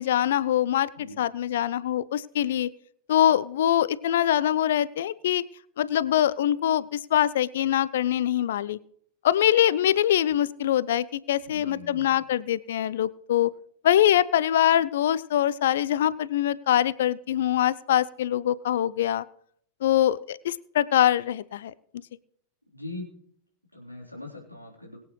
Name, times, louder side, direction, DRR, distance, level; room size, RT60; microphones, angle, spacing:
voice 1, 0.0-0.9 1.2-2.7 3.1-5.4 5.8-8.8 9.2-13.5 13.8-19.2 19.8-21.7, left 11 dB, 60° left, 19 dB, 0.5 m, -23 dB
voice 2, 11.4-12.2 22.7-23.1 23.7-25.0, left 2 dB, 90° left, -2 dB, 3.6 m, -41 dB
22.0 x 8.7 x 3.2 m, 0.64 s
figure-of-eight pair, 90°, 0 cm